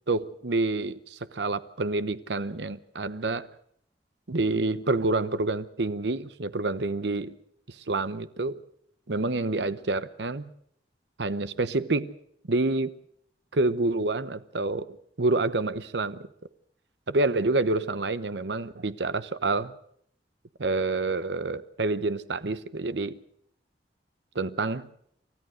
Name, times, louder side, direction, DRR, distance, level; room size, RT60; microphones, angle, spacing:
voice 1, 0.1-3.5 4.3-7.3 7.8-8.6 9.1-10.5 11.2-12.1 12.5-12.9 13.5-16.3 17.1-19.7 20.6-23.2 24.3-24.8, right 2 dB, 70° right, 0.9 m, -28 dB
28.0 x 14.0 x 6.4 m
head